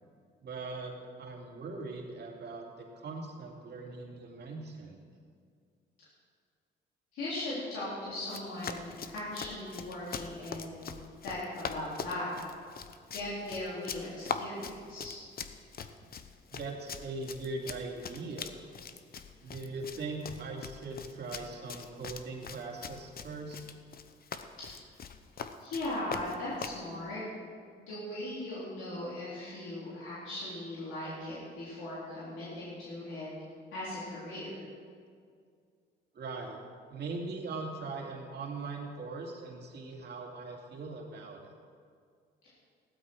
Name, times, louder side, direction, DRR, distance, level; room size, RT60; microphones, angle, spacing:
voice 1, 0.4-5.0 16.0-16.1 16.5-18.6 19.4-23.6 36.1-36.6 36.9-41.5, right 3 dB, 55° right, 0 dB, 2.7 m, -40 dB
voice 2, 7.1-10.9 11.2-12.3 13.1-15.2 25.6-27.2 27.8-33.3 33.7-34.6, left 1 dB, 85° left, -10 dB, 4.1 m, -38 dB
Run, 8.2-26.8, left 6 dB, 50° left, 0.9 m, -42 dB
15.5 x 12.5 x 4.8 m, 2.2 s
cardioid pair, 90°, 20 cm